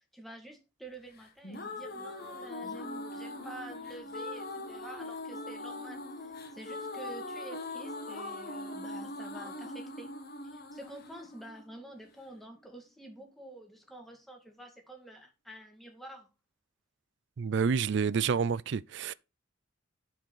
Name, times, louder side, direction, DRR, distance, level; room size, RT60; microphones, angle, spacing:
voice 1, 0.1-10.1 10.5-16.3, right 1 dB, ahead, 2.1 m, -49 dB
sound 1, 1.2-12.2, left 2 dB, 50° left, 1.8 m, -41 dB
voice 2, 17.4-19.1, right 6 dB, 60° right, 0.4 m, -28 dB
11.0 x 5.0 x 4.7 m
head